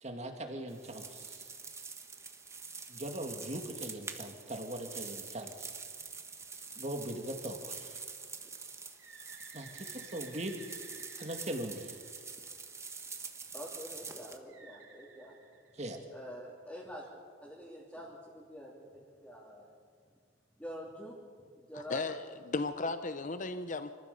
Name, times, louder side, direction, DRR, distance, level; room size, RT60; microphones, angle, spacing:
voice 1, 0.0-1.4 2.9-5.7 6.8-8.0 9.5-10.6 11.2-11.9 15.8-16.0, right 1 dB, 35° right, 4 dB, 2.2 m, -40 dB
sound 1, 0.7-14.4, right 5 dB, 15° right, 1.1 m, -46 dB
Bird, 9.0-12.7 14.5-16.3, right 5 dB, 80° right, 3.7 m, -55 dB
voice 2, 13.5-15.4 16.1-17.1 17.4-19.7 20.6-22.0, equal, 5° left, -6 dB, 3.0 m, -47 dB
voice 3, 21.7-23.9, left 3 dB, 40° left, 10 dB, 0.7 m, -35 dB
26.0 x 15.0 x 7.0 m, 2.1 s
head